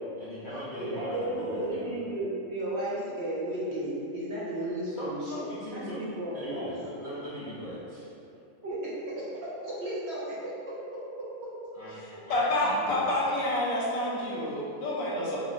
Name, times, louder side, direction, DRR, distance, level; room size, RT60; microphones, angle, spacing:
voice 1, 0.2-1.9 5.0-6.0 6.3-8.1 11.8-13.3, equal, 60° left, -10 dB, 0.5 m, -39 dB
voice 2, 0.8-5.5 5.7-6.7 8.6-10.8 11.4-11.5, right 1 dB, 60° right, -7 dB, 0.8 m, -34 dB
voice 3, 12.3-15.4, left 1 dB, 80° left, -5 dB, 1.1 m, -28 dB
4.5 x 2.0 x 2.4 m, 2.8 s
omnidirectional pair, 1.4 m